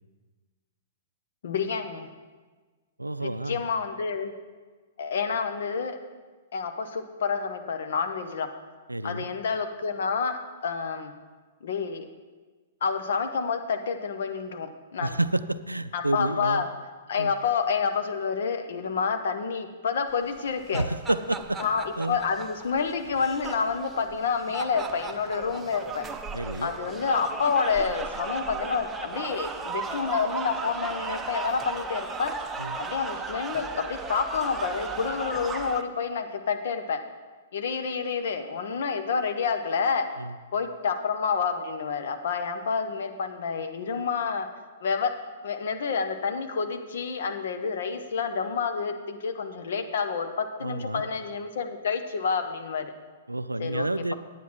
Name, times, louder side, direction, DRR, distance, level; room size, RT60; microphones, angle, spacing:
voice 1, 1.4-2.1 3.2-4.3 5.0-6.0 6.5-8.5 9.0-11.1 11.6-12.0 12.8-15.2 15.9-16.7 17.1-20.9 21.6-26.0 26.6-32.3 32.8-37.0 37.5-40.1 40.5-44.5 44.8-45.1 45.4-52.9 53.6-54.1, left 5 dB, 60° left, 7 dB, 1.0 m, -28 dB
voice 2, 3.0-3.6 8.9-9.3 15.0-16.6 17.2-17.3 20.7-21.6 22.0-22.2 26.3-26.7 32.6-32.8 40.2-40.4 50.6-51.0 53.3-54.1, right 2 dB, 85° right, 14 dB, 0.4 m, -29 dB
sound 1, 20.4-35.8, right 4 dB, 15° right, 0.6 m, -36 dB
9.5 x 9.1 x 4.5 m, 1.4 s
figure-of-eight pair, 110°, 0 cm